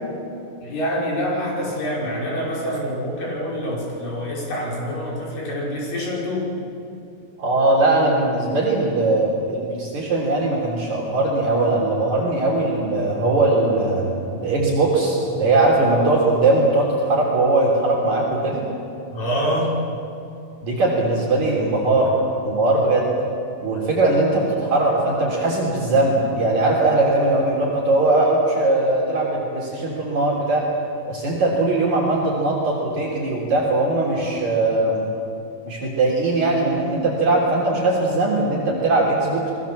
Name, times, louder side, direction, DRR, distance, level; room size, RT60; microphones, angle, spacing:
voice 1, 0.6-6.5 19.1-19.8, equal, 60° left, -3 dB, 7.3 m, -26 dB
voice 2, 7.4-18.6 20.6-22.1 22.4-23.1 23.6-30.7 31.1-35.1 35.7-39.5, right 2 dB, 50° right, -3 dB, 4.6 m, -20 dB
30.0 x 21.0 x 7.4 m, 2.6 s
omnidirectional pair, 4.3 m